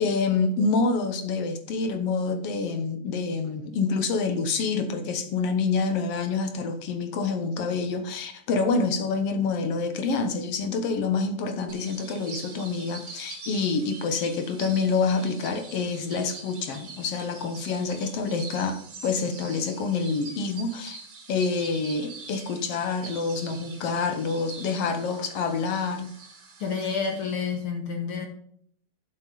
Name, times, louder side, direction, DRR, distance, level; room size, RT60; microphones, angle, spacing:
voice 1, 0.0-21.0 21.3-26.1, left 4 dB, 70° left, 8 dB, 1.5 m, -27 dB
sound 1, 11.7-27.6, right 4 dB, 40° right, 2.1 m, -44 dB
voice 2, 26.6-28.3, left 5 dB, 50° left, 3 dB, 1.8 m, -29 dB
10.5 x 7.6 x 3.9 m, 0.63 s
omnidirectional pair, 3.9 m